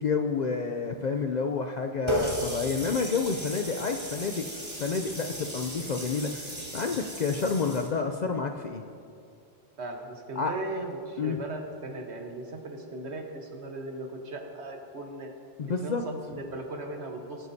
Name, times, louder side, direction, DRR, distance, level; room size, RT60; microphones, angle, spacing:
voice 1, 0.0-4.5 4.8-8.8 10.4-10.5 11.2-11.4 15.6-16.0, left 5 dB, 55° left, 5 dB, 0.5 m, -29 dB
Water tap faucet, 2.1-7.9, equal, 25° right, 2.1 m, -35 dB
voice 2, 9.8-15.3 15.8-17.5, right 2 dB, 70° right, 3 dB, 1.5 m, -38 dB
19.0 x 9.3 x 2.7 m, 2.4 s
omnidirectional pair, 1.2 m